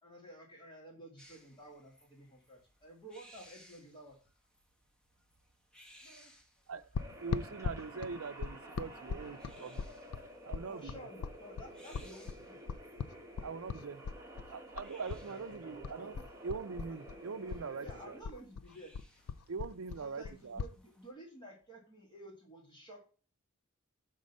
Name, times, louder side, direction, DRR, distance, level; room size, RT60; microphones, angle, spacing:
voice 1, 0.0-4.2 10.7-12.6 17.8-18.9 20.0-23.0, right 1 dB, 20° left, -1 dB, 1.8 m, -52 dB
sound 1, 1.2-21.1, equal, 5° left, 1.0 m, -64 dB
voice 2, 5.7-6.7 14.7-16.3 19.4-19.5 19.9-20.0, equal, 50° left, 4 dB, 1.3 m, -59 dB
sound 2, 6.9-15.2 15.5-17.2 17.5-20.7, left 6 dB, 75° left, 0.4 m, -40 dB
sound 3, 7.0-18.2, right 1 dB, 15° right, 1.4 m, -51 dB
voice 3, 7.2-9.8 10.4-10.9 13.4-14.0 14.5-16.2 16.4-18.2 19.5-20.6, right 5 dB, 70° right, 13 dB, 0.5 m, -42 dB
6.4 x 3.6 x 5.3 m, 0.38 s
head